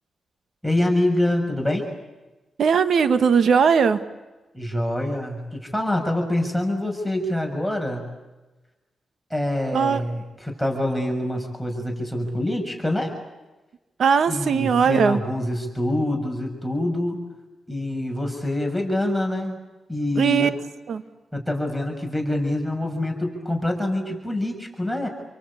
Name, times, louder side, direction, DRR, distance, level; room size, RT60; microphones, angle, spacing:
voice 1, 0.6-1.9 4.5-8.0 9.3-13.1 14.3-17.1 17.7-19.6 19.9-20.5 21.3-25.1, left 1 dB, 5° right, 3 dB, 6.6 m, -25 dB
voice 2, 2.6-4.0 9.7-10.0 14.0-15.2 20.2-20.5 20.9-21.0, right 6 dB, 70° right, 11 dB, 1.6 m, -19 dB
29.0 x 23.5 x 8.6 m, 1.1 s
cardioid pair, 70°, 0 cm